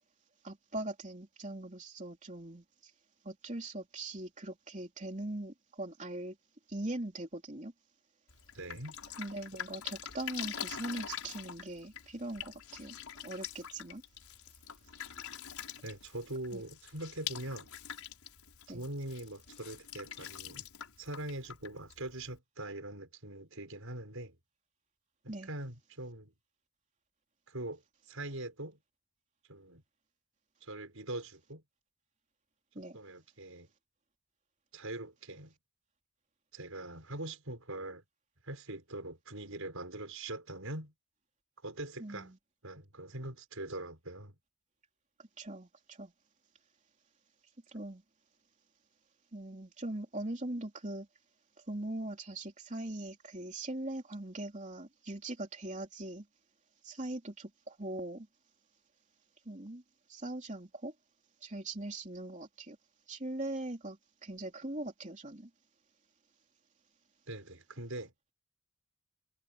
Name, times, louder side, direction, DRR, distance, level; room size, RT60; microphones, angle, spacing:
voice 1, 0.4-2.9 3.2-6.4 6.7-7.7 9.2-13.0 13.2-14.0 16.5-16.6 18.7-18.9 25.3-25.5 32.7-33.0 42.0-42.4 45.4-46.1 47.7-48.0 49.3-51.1 51.7-56.3 56.8-58.3 59.4-59.8 60.1-60.9 61.4-62.8 63.1-65.5, right 1 dB, 35° right, 3.3 m, -41 dB
Drip, 8.3-22.4, left 9 dB, 85° left, 5.2 m, -45 dB
voice 2, 8.5-9.0 15.8-17.7 18.7-20.7 21.0-24.4 25.2-26.3 27.5-28.8 29.5-29.8 30.6-31.6 32.9-33.7 34.7-35.5 36.5-38.0 38.4-40.9 41.6-42.3 42.6-44.4 67.3-68.1, right 1 dB, 70° right, 6.0 m, -42 dB
head